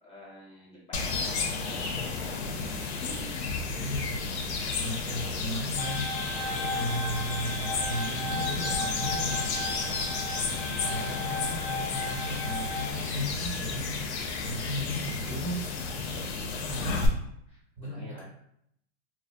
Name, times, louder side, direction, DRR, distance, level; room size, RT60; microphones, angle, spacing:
voice 1, 0.0-1.5 2.4-2.5 6.4-6.9 7.4-8.2 8.6-10.3 14.6-14.9 16.0-17.1 17.5-18.2, left 1 dB, 20° left, -5 dB, 0.7 m, -51 dB
sound 1, 0.9-17.1, left 4 dB, 80° left, 0.6 m, -33 dB
voice 2, 3.6-4.2 4.7-6.1 6.5-9.4 10.7-14.0 14.4-15.6 16.7-17.0 17.8-18.2, equal, 25° right, -4 dB, 0.5 m, -35 dB
sound 2, 5.8-12.9, left 2 dB, 35° left, 0.4 m, -35 dB
sound 3, 6.3-8.8, right 2 dB, 65° right, 0.7 m, -52 dB
2.3 x 2.0 x 2.7 m, 0.73 s
supercardioid pair, 145°, 33 cm